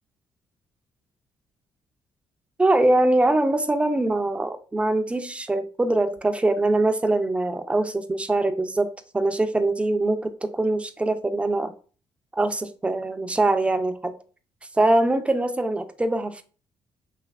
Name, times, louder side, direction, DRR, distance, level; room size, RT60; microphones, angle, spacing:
voice 1, 2.6-11.7 12.3-14.1 14.8-16.4, right 2 dB, 15° right, 8 dB, 0.4 m, -23 dB
3.2 x 2.8 x 2.3 m, 0.38 s
cardioid pair, 105°, 9 cm